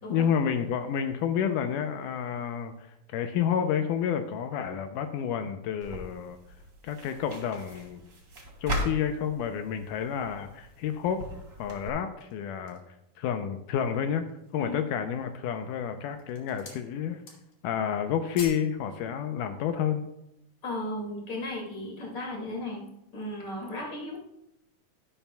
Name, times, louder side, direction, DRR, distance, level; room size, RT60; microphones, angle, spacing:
voice 1, 0.1-6.4 6.8-8.1 8.6-11.2 11.6-12.8 13.2-14.2 14.5-17.2 17.6-20.0, left 8 dB, 85° left, 7 dB, 2.2 m, -30 dB
sound 1, 5.8-11.9, equal, 35° right, 2.6 m, -38 dB
sound 2, 12.0-13.0 13.6-13.7 14.1-14.7 15.4-15.8 16.1-16.9 17.1-17.7 17.9-18.7 19.0-19.2, left 4 dB, 55° left, 2.4 m, -46 dB
voice 2, 20.6-22.8 23.1-24.2, left 1 dB, 30° left, -1 dB, 2.4 m, -35 dB
11.5 x 11.0 x 2.3 m, 0.84 s
omnidirectional pair, 3.7 m